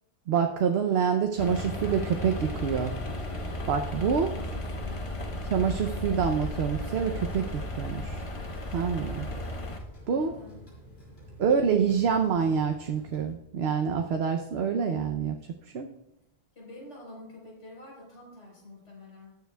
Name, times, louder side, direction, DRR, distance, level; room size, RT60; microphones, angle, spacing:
voice 1, 0.3-3.0 3.7-4.3 5.4-8.3 8.7-9.3 10.1-10.3 11.4-15.4 15.6-15.9, right 6 dB, 65° right, 5 dB, 0.9 m, -26 dB
sound 1, 1.4-9.8, left 1 dB, 30° left, 0.9 m, -34 dB
voice 2, 4.3-5.3 10.1-10.6 16.5-19.3, left 1 dB, 75° left, -4 dB, 4.8 m, -47 dB
sound 2, 6.0-13.3, left 1 dB, 60° left, 4.2 m, -49 dB
19.5 x 7.0 x 2.3 m, 0.87 s
omnidirectional pair, 1.2 m